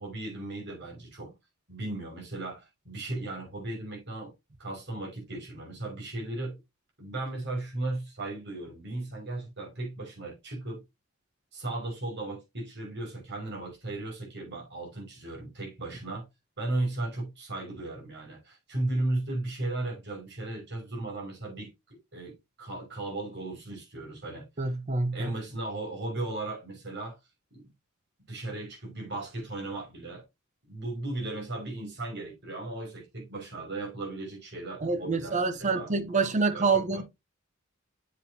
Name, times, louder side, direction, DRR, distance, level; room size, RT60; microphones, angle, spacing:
voice 1, 0.0-1.3 1.7-4.3 4.6-6.6 7.0-10.8 11.5-16.2 16.6-21.7 22.1-24.7 25.1-27.2 27.5-27.7 28.3-30.2 30.7-36.2 36.5-37.0, right 2 dB, 55° right, 5.6 m, -36 dB
voice 2, 24.6-25.3 34.8-37.0, right 4 dB, 35° right, 0.8 m, -27 dB
8.2 x 7.3 x 2.8 m
head